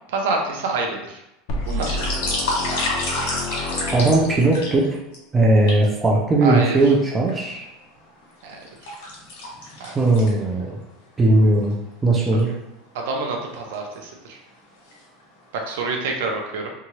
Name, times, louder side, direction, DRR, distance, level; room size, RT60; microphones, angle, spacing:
voice 1, 0.1-1.2 1.7-2.1 6.4-6.8 8.4-8.6 9.8-10.0 12.3-12.4 12.9-14.4 15.5-16.7, right 3 dB, 80° right, 2 dB, 0.6 m, -27 dB
sound 1, 1.5-4.7, left 2 dB, 50° left, 0.4 m, -29 dB
sound 2, 1.6-5.2 5.7-5.8 6.6-7.4 7.9-10.7 11.1-11.2 11.6-11.7 12.2-12.4 13.3-13.7 14.3-14.5 14.8-15.4 15.7-15.8, left 2 dB, 80° left, 1.2 m, -29 dB
voice 2, 3.9-5.0 5.3-7.7 9.9-10.8 11.2-11.8 12.0-12.5, right 2 dB, 10° right, -2 dB, 0.4 m, -18 dB
2.8 x 2.3 x 2.9 m, 0.89 s
supercardioid pair, 170°, 0 cm